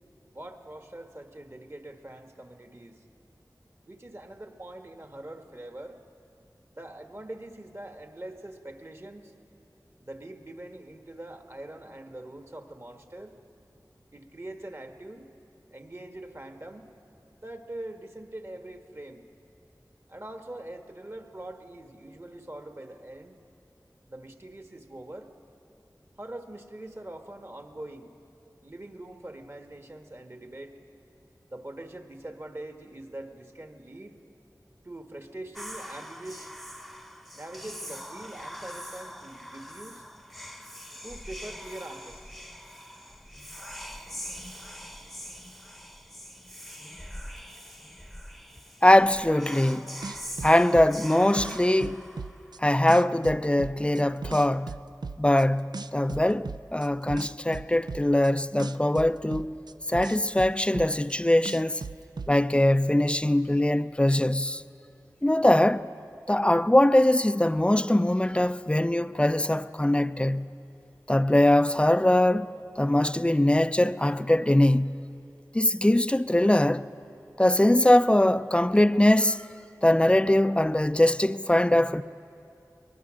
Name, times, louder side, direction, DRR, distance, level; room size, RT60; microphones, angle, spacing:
voice 1, 0.3-3.0 3.9-6.0 6.7-9.3 10.0-13.4 14.1-15.3 15.7-16.9 17.4-19.3 20.1-23.4 24.1-25.3 26.2-28.1 28.6-30.8 31.5-34.2 34.8-36.5 37.3-40.0 41.0-42.3, right 1 dB, 40° right, 1.5 m, -43 dB
Whispering, 35.5-52.7, equal, ahead, 0.9 m, -43 dB
voice 2, 48.8-49.9 50.4-52.0 52.6-54.7 55.2-59.6 59.9-61.8 62.3-64.6 65.2-65.9 66.3-70.5 71.1-72.5 72.8-75.0 75.5-76.9 77.4-79.5 79.8-82.0, left 1 dB, 15° left, 0.5 m, -22 dB
sound 1, 49.7-49.8 50.0-52.6 52.9-55.4 55.7-58.3 58.6-61.2 61.4-62.3, right 4 dB, 80° right, 0.4 m, -37 dB
22.0 x 20.5 x 6.4 m
wide cardioid pair, 50°, 7 cm